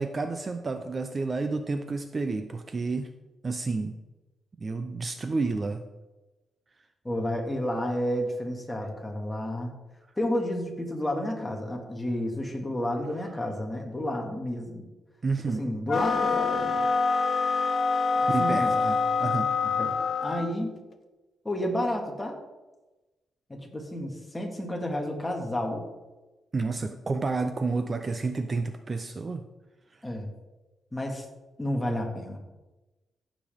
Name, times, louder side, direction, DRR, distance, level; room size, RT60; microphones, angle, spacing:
voice 1, 0.0-3.1 3.4-3.9 4.6-5.8 15.2-15.6 18.3-19.5 26.5-29.4, right 3 dB, 30° right, 7 dB, 0.6 m, -30 dB
voice 2, 7.0-9.7 10.2-14.9 15.5-16.8 18.4-18.7 19.6-20.8 21.4-22.4 23.5-25.8 30.0-30.3 30.9-31.3 31.6-32.4, left 1 dB, 10° left, 1 dB, 1.9 m, -31 dB
sound 1, 15.9-20.5, left 4 dB, 45° left, 0.9 m, -25 dB
14.5 x 7.4 x 3.6 m, 1.1 s
cardioid pair, 125°, 0 cm